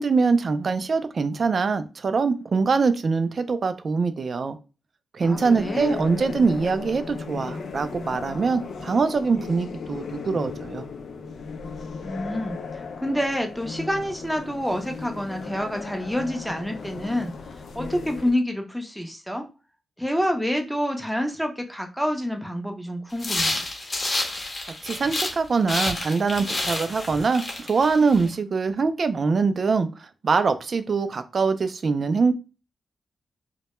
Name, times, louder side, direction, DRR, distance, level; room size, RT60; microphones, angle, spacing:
voice 1, 0.0-4.6 5.1-10.8 24.7-32.3, right 4 dB, 55° right, 11 dB, 0.3 m, -23 dB
sound 1, 5.2-18.3, left 5 dB, 80° left, 0.3 m, -36 dB
voice 2, 5.2-6.1 12.0-19.5 20.0-23.6, equal, ahead, 4 dB, 0.5 m, -28 dB
sound 2, 23.2-25.4 25.7-28.3, left 2 dB, 45° left, 0.7 m, -29 dB
2.2 x 2.1 x 2.9 m, 0.31 s
cardioid pair, 75°, 0 cm